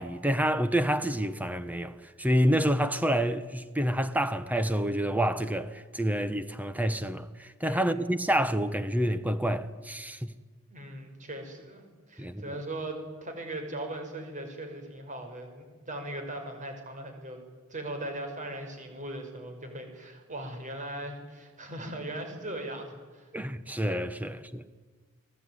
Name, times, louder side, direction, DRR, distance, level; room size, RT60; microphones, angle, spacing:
voice 1, 0.0-10.3 12.2-12.6 23.3-24.7, equal, 5° right, 1.0 m, -28 dB
voice 2, 7.6-8.0 10.7-17.4 17.7-23.3, right 1 dB, 35° right, 5.8 m, -39 dB
30.0 x 19.5 x 9.7 m
head